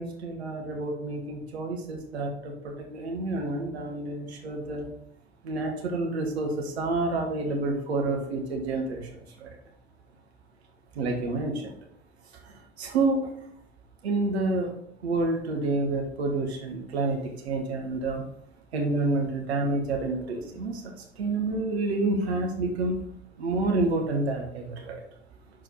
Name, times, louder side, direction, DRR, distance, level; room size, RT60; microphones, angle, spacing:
voice 1, 0.0-4.9 5.4-9.1 9.4-9.5 10.9-11.7 12.8-13.3 14.0-14.7 15.0-17.2 17.4-18.2 18.7-20.8 21.2-23.0 23.4-25.0, right 2 dB, 75° right, 2 dB, 1.4 m, -28 dB
6.4 x 4.5 x 4.4 m, 0.69 s
figure-of-eight pair, 65°, 32 cm